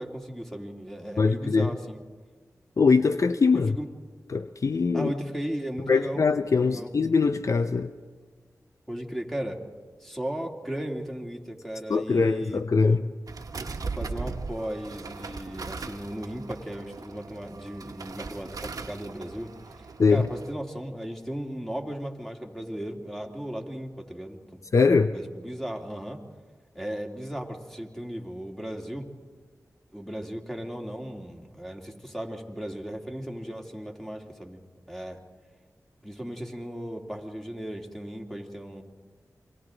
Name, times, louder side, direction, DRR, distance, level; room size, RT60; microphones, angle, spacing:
voice 1, 0.0-2.0 3.5-3.9 4.9-6.2 6.6-6.9 8.9-9.6 10.0-13.0 13.9-19.5 20.1-24.6 25.1-26.2 26.7-29.1 29.9-34.6 34.9-35.2 36.0-38.8, equal, 5° left, 1 dB, 2.8 m, -36 dB
voice 2, 1.2-1.7 2.8-3.8 4.3-5.1 5.9-7.9 11.9-13.0 20.0-20.3 24.7-25.2, left 4 dB, 55° left, 10 dB, 0.5 m, -22 dB
sound 1, 13.3-20.5, right 4 dB, 70° right, 1.2 m, -38 dB
28.0 x 24.0 x 3.9 m, 1.5 s
cardioid pair, 45°, 6 cm